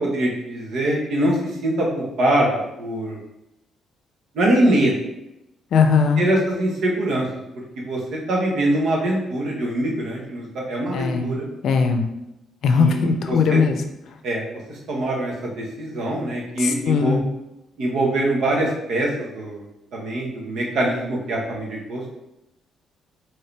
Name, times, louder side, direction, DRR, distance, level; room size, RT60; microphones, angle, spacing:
voice 1, 0.0-3.2 4.3-4.9 6.2-7.3 7.9-11.5 12.6-13.6 14.2-14.4 14.7-17.2 17.8-19.7 19.9-22.1, right 1 dB, 75° right, -2 dB, 1.3 m, -23 dB
voice 2, 5.7-6.2 10.9-11.3 11.6-12.0 12.6-13.8 16.6-17.2, left 5 dB, 70° left, 6 dB, 0.5 m, -19 dB
4.6 x 3.0 x 3.3 m, 0.90 s
cardioid pair, 90°, 0 cm